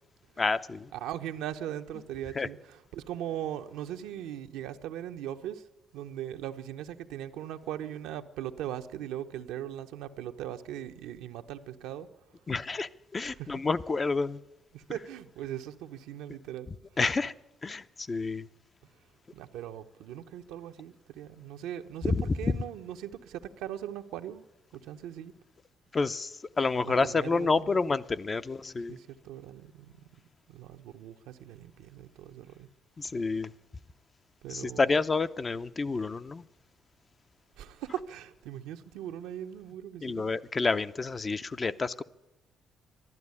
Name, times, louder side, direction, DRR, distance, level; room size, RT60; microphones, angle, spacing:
voice 1, 0.4-0.9 2.4-2.5 12.5-14.4 17.0-17.3 17.6-18.5 25.9-26.3 26.6-28.9 33.0-33.5 34.5-36.4 40.0-42.0, left 4 dB, 30° left, 12 dB, 0.6 m, -29 dB
voice 2, 0.9-5.7 5.9-12.1 13.2-13.6 14.7-16.7 19.3-24.5 24.7-25.3 26.8-27.8 28.9-30.1 30.5-32.7 34.4-35.0 37.6-40.3, right 11 dB, 90° right, 6 dB, 0.8 m, -39 dB
12.0 x 11.5 x 9.6 m, 0.99 s
cardioid pair, 75°, 0 cm